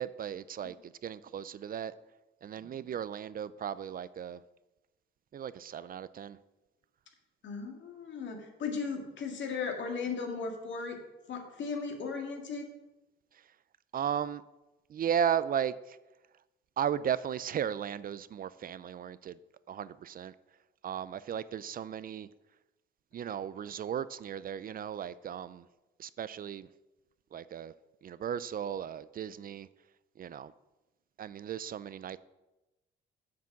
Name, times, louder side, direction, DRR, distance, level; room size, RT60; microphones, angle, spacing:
voice 1, 0.0-1.9 2.4-4.4 5.3-6.4 13.3-13.4 13.9-14.4 14.9-16.0 16.8-19.4 19.7-20.3 20.8-22.3 23.1-25.7 26.0-26.7 27.3-27.7 28.0-29.7 30.2-30.5 31.2-32.2, right 9 dB, 45° right, 17 dB, 0.4 m, -35 dB
voice 2, 7.4-11.0 11.3-12.6, left 5 dB, 70° left, 3 dB, 2.0 m, -36 dB
7.4 x 6.0 x 7.2 m, 1.0 s
cardioid pair, 90°, 20 cm